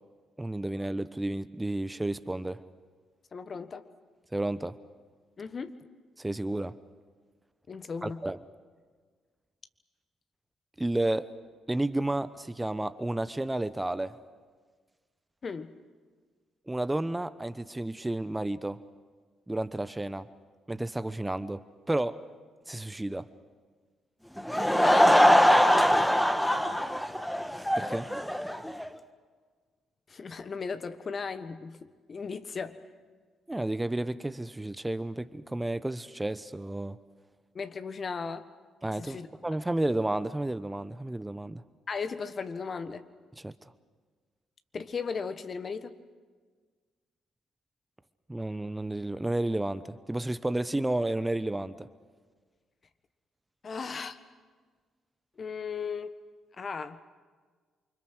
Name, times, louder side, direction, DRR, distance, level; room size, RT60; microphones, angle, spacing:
voice 1, 0.4-2.6 4.3-4.8 6.2-6.7 8.0-8.4 10.8-11.3 11.7-14.2 16.7-18.8 19.5-20.3 20.7-22.2 22.7-23.3 25.9-26.1 27.7-28.1 33.5-37.0 38.8-41.6 43.4-43.5 48.3-51.9, right 1 dB, 15° right, 1.0 m, -31 dB
voice 2, 3.3-3.8 5.4-5.8 7.7-8.2 15.4-15.7 24.7-25.5 30.1-32.8 37.5-38.5 39.0-39.3 41.9-43.1 44.7-45.9 53.6-54.2 55.4-56.2 56.6-57.0, left 5 dB, 45° left, 1.4 m, -36 dB
Laughter / Crowd, 24.4-28.9, equal, 5° left, 1.4 m, -22 dB
28.5 x 25.0 x 6.4 m
hypercardioid pair, 45°, 0 cm